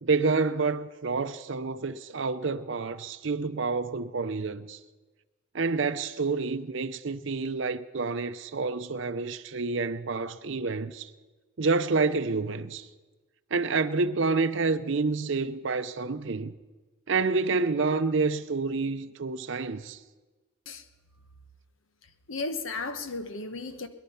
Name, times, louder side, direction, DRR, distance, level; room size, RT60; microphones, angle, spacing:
voice 1, 0.0-4.8 5.5-11.1 11.6-12.9 13.5-16.5 17.1-20.0, right 4 dB, 65° right, 0.6 m, -28 dB
voice 2, 22.3-23.9, left 3 dB, 70° left, 1.0 m, -34 dB
21.5 x 11.5 x 5.7 m
head